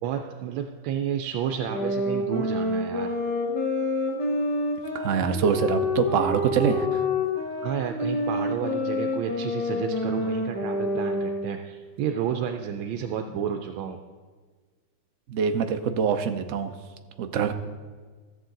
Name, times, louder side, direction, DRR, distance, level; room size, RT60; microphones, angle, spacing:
voice 1, 0.0-3.1 7.6-14.0, right 8 dB, 85° right, 5 dB, 1.4 m, -31 dB
sound 1, 1.6-11.6, left 1 dB, 15° left, 0.9 m, -27 dB
voice 2, 4.9-7.0 15.3-16.7 17.2-17.5, right 7 dB, 65° right, 7 dB, 0.7 m, -25 dB
13.5 x 7.5 x 3.9 m, 1.4 s
omnidirectional pair, 2.1 m